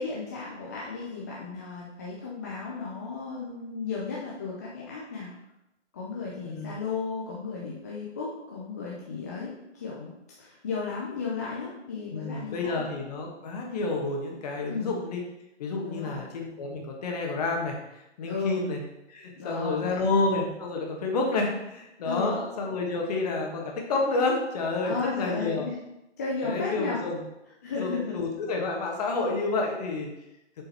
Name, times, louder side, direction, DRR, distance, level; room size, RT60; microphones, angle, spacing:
voice 1, 0.0-5.3 5.9-10.1 10.4-12.8 14.7-15.0 15.8-16.2 18.2-18.6 19.4-20.1 22.0-22.4 24.8-25.8 26.2-27.0 27.6-28.2, left 4 dB, 15° left, -5 dB, 0.5 m, -34 dB
voice 2, 6.4-6.8 12.1-15.2 15.6-18.8 19.1-25.7 26.4-27.2 27.8-30.1, left 3 dB, 35° left, 0 dB, 1.6 m, -29 dB
7.2 x 5.6 x 4.2 m, 0.91 s
figure-of-eight pair, 140°, 35 cm